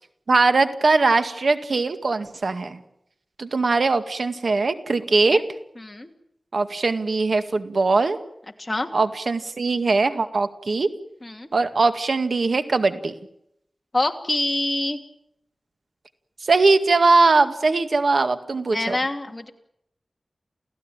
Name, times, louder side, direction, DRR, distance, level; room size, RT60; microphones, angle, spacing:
voice 1, 0.3-2.8 3.4-5.4 6.5-8.2 8.9-10.9 11.5-13.1 16.4-19.0, right 3 dB, 70° right, 9 dB, 2.0 m, -20 dB
voice 2, 5.8-6.1 8.6-8.9 11.2-11.5 13.9-15.0 18.7-19.5, left 2 dB, 25° left, 4 dB, 2.9 m, -26 dB
29.0 x 16.5 x 9.0 m, 0.77 s
wide cardioid pair, 80°, 0 cm